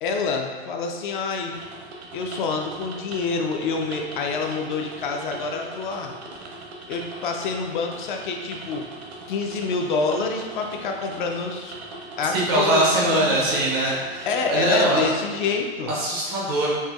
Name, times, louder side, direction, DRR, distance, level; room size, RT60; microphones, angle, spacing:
voice 1, 0.0-1.6 2.1-6.1 6.9-8.9 9.3-11.7 12.2-13.5 14.3-15.9, left 4 dB, 55° left, 3 dB, 0.4 m, -27 dB
sound 1, 1.5-15.6, right 2 dB, 75° right, 0.7 m, -40 dB
voice 2, 12.3-15.1 15.9-16.7, right 1 dB, 25° right, -4 dB, 0.3 m, -22 dB
4.3 x 2.6 x 2.3 m, 1.4 s
supercardioid pair, 155°, 31 cm